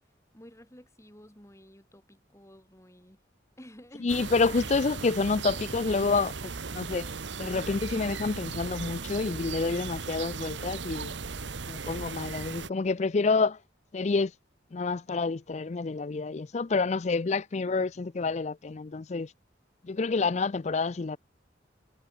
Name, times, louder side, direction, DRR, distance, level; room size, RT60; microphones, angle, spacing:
voice 1, 0.3-3.2 3.6-4.1, equal, 15° left, 5.7 m, -52 dB
voice 2, 4.0-7.1 7.4-11.1 11.7-13.6 13.9-14.3 14.7-19.3 19.8-21.2, left 4 dB, 35° left, 0.4 m, -28 dB
sound 1, 4.1-12.7, right 4 dB, 75° right, 1.2 m, -37 dB
head